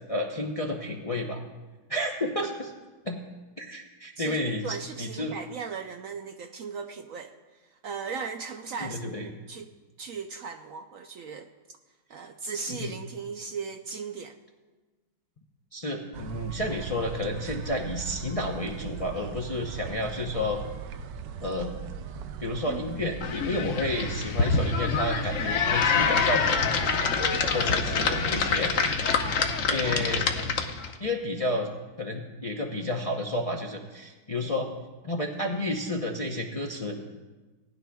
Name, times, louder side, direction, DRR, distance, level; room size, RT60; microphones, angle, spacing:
voice 1, 0.1-1.4 1.9-2.7 3.0-3.2 3.6-5.4 8.8-9.3 12.7-12.9 15.7-20.6 21.4-21.7 22.4-28.7 29.7-30.3 31.0-31.7 32.0-34.7 35.0-36.9, left 1 dB, 35° left, 0 dB, 0.5 m, -31 dB
voice 2, 4.2-7.3 7.8-9.7 10.0-11.5 12.1-14.4 22.7-22.9 27.5-27.7, right 5 dB, 70° right, 6 dB, 0.8 m, -37 dB
sound 1, 16.1-28.9, right 6 dB, 85° right, 1.3 m, -39 dB
sound 2, 23.2-30.9, left 5 dB, 55° left, 1.0 m, -26 dB
19.0 x 11.0 x 2.3 m, 1.3 s
omnidirectional pair, 1.8 m